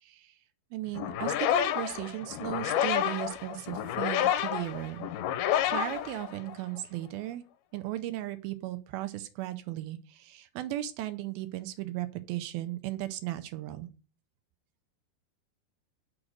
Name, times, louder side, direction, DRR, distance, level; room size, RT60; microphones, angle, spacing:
voice 1, 0.0-0.4 0.7-5.1 5.7-7.4 7.7-13.9, right 14 dB, 80° right, 11 dB, 2.3 m, -36 dB
sound 1, 0.9-6.8, left 11 dB, 85° left, 2.5 m, -30 dB
6.4 x 4.9 x 6.1 m, 0.37 s
omnidirectional pair, 4.6 m